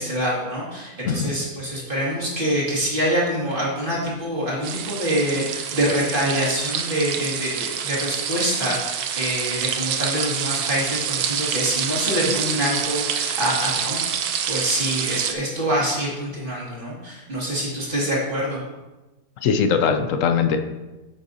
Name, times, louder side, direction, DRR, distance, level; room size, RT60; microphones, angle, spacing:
voice 1, 0.0-14.1 14.5-18.6, equal, 30° right, -5 dB, 2.1 m, -25 dB
sound 1, 4.6-15.3, right 8 dB, 70° right, 1.1 m, -27 dB
voice 2, 19.4-20.6, left 6 dB, 65° left, 7 dB, 0.8 m, -21 dB
9.0 x 7.1 x 2.7 m, 1.1 s
omnidirectional pair, 1.8 m